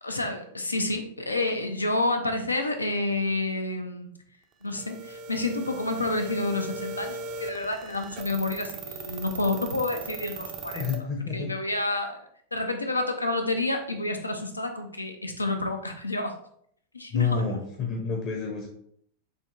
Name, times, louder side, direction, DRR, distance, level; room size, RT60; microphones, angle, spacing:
voice 1, 0.0-4.1 4.6-10.9 11.3-12.2 12.5-16.4 16.9-17.6, left 2 dB, 80° left, 5 dB, 0.5 m, -29 dB
sound 1, 4.8-11.0, right 3 dB, 35° right, 0.5 m, -38 dB
voice 2, 10.7-11.5 17.1-18.7, left 5 dB, 35° left, 0 dB, 0.7 m, -29 dB
6.7 x 2.8 x 2.4 m, 0.67 s
figure-of-eight pair, 90°, 0 cm